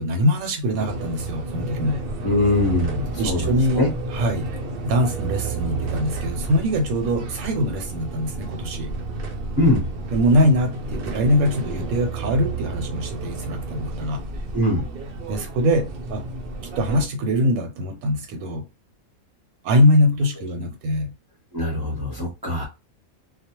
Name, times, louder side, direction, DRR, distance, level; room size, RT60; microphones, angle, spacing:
voice 1, 0.0-2.0 3.2-3.8 4.1-4.5 4.8-8.9 10.1-14.2 15.3-16.2 16.8-18.7 19.6-21.1, equal, 90° right, 1.1 m, -22 dB
sound 1, 0.8-17.1, right 3 dB, 70° right, 0.5 m, -31 dB
voice 2, 2.2-3.9 9.6-9.9 14.5-14.9 21.5-22.7, left 2 dB, 20° right, 0.7 m, -22 dB
2.3 x 2.1 x 2.9 m
omnidirectional pair, 1.5 m